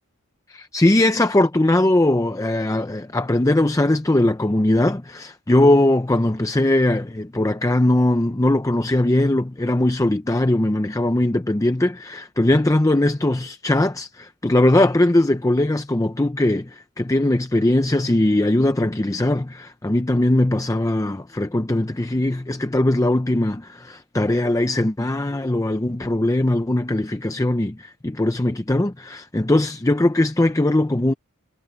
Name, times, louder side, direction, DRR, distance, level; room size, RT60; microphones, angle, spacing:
voice 1, 0.5-31.1, left 1 dB, 15° left, 0.6 m, -20 dB
head